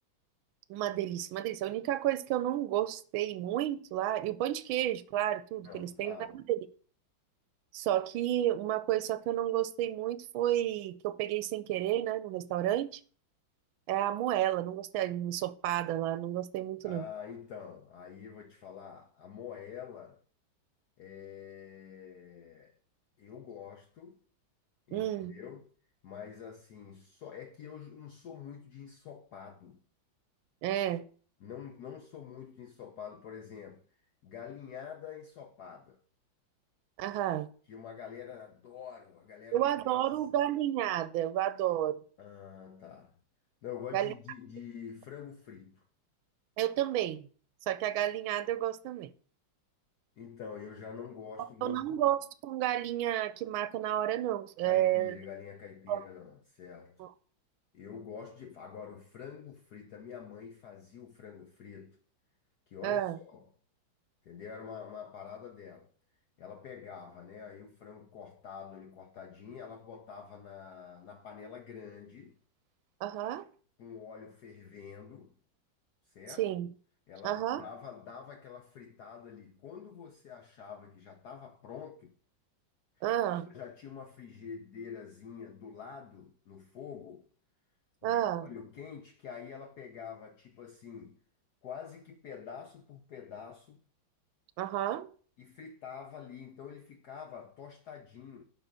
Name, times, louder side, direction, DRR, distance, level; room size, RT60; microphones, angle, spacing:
voice 1, 0.7-6.6 7.7-13.0 13.9-17.0 24.9-25.3 30.6-31.0 37.0-37.5 39.5-42.0 43.9-44.1 46.6-47.3 47.7-49.1 51.6-55.2 55.9-56.0 57.0-57.1 62.8-63.2 73.0-73.5 76.4-76.7 77.2-77.6 83.0-83.5 88.0-88.5 94.6-95.1, right 12 dB, 85° right, 1.4 m, -31 dB
voice 2, 5.6-6.4 16.8-20.2 21.0-22.7 23.2-24.2 24.9-25.7 26.0-29.8 31.4-34.0 34.2-36.0 37.7-40.2 42.2-43.2 43.6-45.8 50.2-52.1 54.6-57.0 57.7-62.0 62.7-63.5 64.2-65.9 66.4-72.4 73.8-75.4 76.1-76.5 77.1-82.1 83.0-83.1 83.5-87.3 88.0-91.2 91.6-93.8 95.4-98.4, left 7 dB, 60° left, 1.3 m, -46 dB
11.0 x 4.0 x 7.3 m
omnidirectional pair, 2.2 m